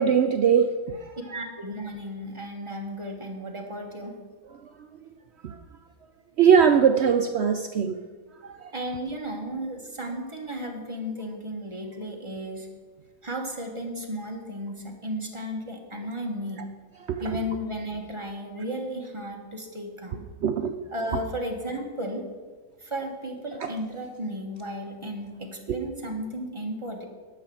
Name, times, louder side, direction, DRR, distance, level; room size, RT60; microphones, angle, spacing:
voice 1, 0.0-1.2 5.4-5.6 6.4-8.0 8.6-8.7 17.1-17.4 20.4-20.7 23.6-23.7 25.7-25.8, right 7 dB, 65° right, 7 dB, 0.6 m, -21 dB
voice 2, 1.3-4.1 8.7-12.7 13.2-16.7 17.2-20.3 20.9-22.2 22.8-27.1, equal, 20° right, 1 dB, 1.4 m, -34 dB
11.0 x 5.8 x 7.8 m, 1.4 s
omnidirectional pair, 1.6 m